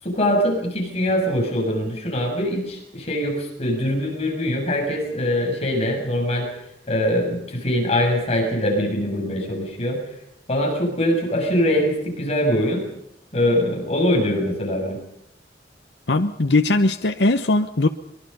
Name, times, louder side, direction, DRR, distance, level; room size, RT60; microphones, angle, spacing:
voice 1, 0.0-6.5 6.9-10.0 10.5-12.8 13.3-15.0, left 1 dB, 35° left, 1 dB, 6.9 m, -22 dB
voice 2, 16.1-17.9, left 2 dB, 75° left, 7 dB, 1.0 m, -19 dB
24.0 x 23.0 x 5.5 m, 0.76 s
head